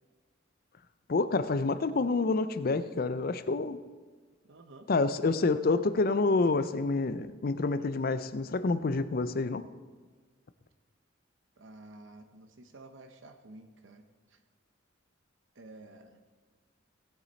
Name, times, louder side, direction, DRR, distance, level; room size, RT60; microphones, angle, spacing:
voice 1, 1.1-3.8 4.9-9.7, left 3 dB, 50° left, 13 dB, 0.5 m, -28 dB
voice 2, 4.5-4.9 11.6-14.0 14.3-14.4 15.5-16.2, right 2 dB, 70° right, 7 dB, 0.8 m, -51 dB
17.5 x 8.3 x 4.1 m, 1.4 s
head